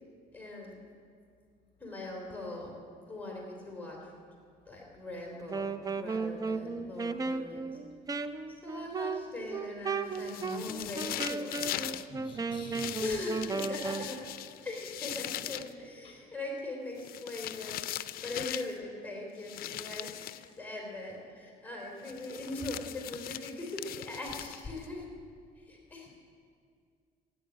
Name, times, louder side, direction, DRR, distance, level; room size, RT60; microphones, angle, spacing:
voice 1, 0.3-0.7 1.8-2.7 3.1-4.0 4.7-7.7 8.6-11.9 12.3-12.4 13.0-14.2 14.6-25.1 25.6-26.1, left 2 dB, 10° left, -1 dB, 3.2 m, -40 dB
Wind instrument woodwind instrument, 5.4-14.1, right 4 dB, 20° right, 0.6 m, -35 dB
sound 1, 10.1-12.1 12.7-15.7 17.0-18.8 19.4-20.5 22.0-24.9, left 13 dB, 60° left, 0.5 m, -40 dB
voice 2, 12.1-13.1 15.5-15.6 16.0-16.2, left 2 dB, 30° left, 3 dB, 4.7 m, -47 dB
13.5 x 9.4 x 9.5 m, 2.2 s
cardioid pair, 110°, 17 cm